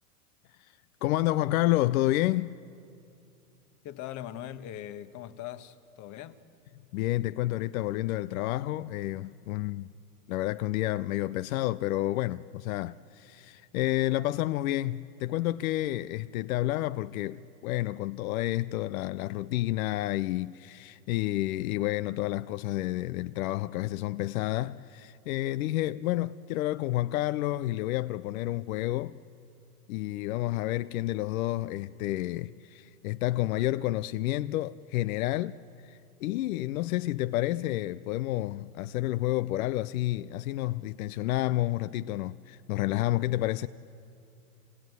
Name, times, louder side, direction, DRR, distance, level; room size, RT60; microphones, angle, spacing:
voice 1, 0.6-2.5 6.9-9.9 10.3-29.2 29.9-35.6 35.8-43.7, left 16 dB, 65° left, 0.7 m, -30 dB
voice 2, 3.8-6.4, left 11 dB, 40° left, 1.3 m, -41 dB
27.0 x 18.0 x 9.4 m
hypercardioid pair, 120°, 45 cm